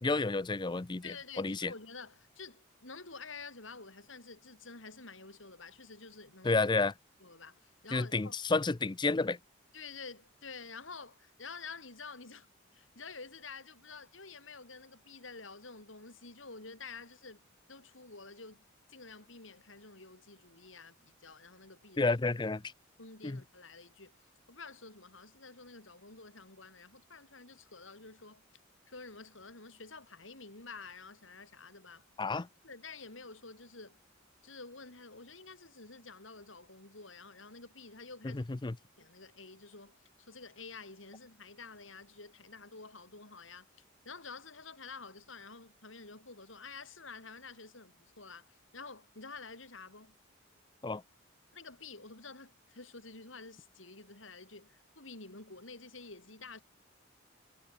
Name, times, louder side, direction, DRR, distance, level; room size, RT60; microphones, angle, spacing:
voice 1, 0.0-1.7 6.4-6.9 7.9-9.4 22.0-22.6 23.2-23.4 32.2-32.5 38.2-38.8 50.8-51.0, left 3 dB, 20° left, 0.5 m, -31 dB
voice 2, 1.0-6.7 7.2-8.3 9.7-12.5 12.7-17.4 17.7-18.6 18.9-22.2 23.0-24.1 24.5-28.4 28.9-32.0 32.6-34.0 34.4-38.4 39.0-43.7 44.0-50.1 51.5-56.6, left 4 dB, 75° left, 4.9 m, -49 dB
head